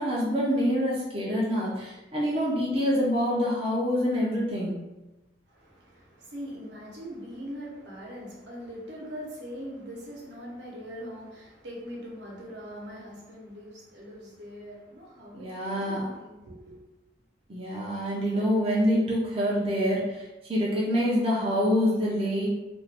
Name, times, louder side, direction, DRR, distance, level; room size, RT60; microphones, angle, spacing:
voice 1, 0.0-4.8 15.3-16.0 17.5-20.2 20.5-22.5, equal, 30° right, -6 dB, 0.5 m, -26 dB
voice 2, 5.5-16.8, equal, 75° right, -4 dB, 0.9 m, -42 dB
2.5 x 2.4 x 3.3 m, 1.1 s
head